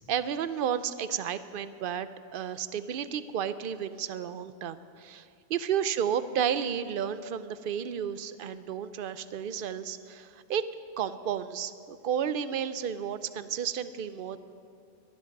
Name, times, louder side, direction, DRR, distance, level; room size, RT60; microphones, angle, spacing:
voice 1, 0.1-2.1 2.3-10.7 11.0-14.4, right 8 dB, 60° right, 13 dB, 0.7 m, -32 dB
19.5 x 12.5 x 5.3 m, 2.5 s
omnidirectional pair, 1.1 m